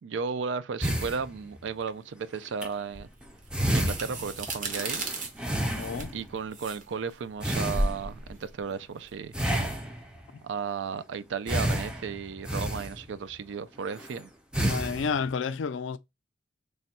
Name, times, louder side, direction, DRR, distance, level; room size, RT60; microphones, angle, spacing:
voice 1, 0.0-3.1 3.7-5.0 6.1-9.3 10.4-14.3, right 5 dB, 70° right, 0.4 m, -34 dB
sound 1, 0.8-1.9 2.5-2.7 3.2-3.3 3.5-6.3 7.4-8.3 9.3-10.3 11.5-13.3 13.9-14.1 14.5-15.3, right 1 dB, 5° right, 0.4 m, -30 dB
sound 2, 2.9-9.7, right 2 dB, 40° right, 0.8 m, -35 dB
voice 2, 5.7-6.1 10.3-10.4 14.6-16.0, left 5 dB, 75° left, 0.4 m, -30 dB
3.4 x 2.2 x 4.1 m
head